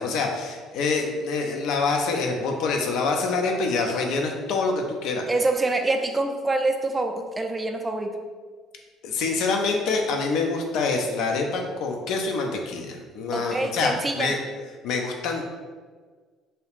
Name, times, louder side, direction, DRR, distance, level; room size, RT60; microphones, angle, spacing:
voice 1, 0.0-5.3 9.0-14.4 14.8-15.5, left 4 dB, 65° left, 2 dB, 0.4 m, -26 dB
voice 2, 5.3-8.2 13.3-14.4, right 2 dB, 20° right, 4 dB, 0.4 m, -25 dB
2.8 x 2.3 x 3.3 m, 1.5 s
hypercardioid pair, 55°, 0 cm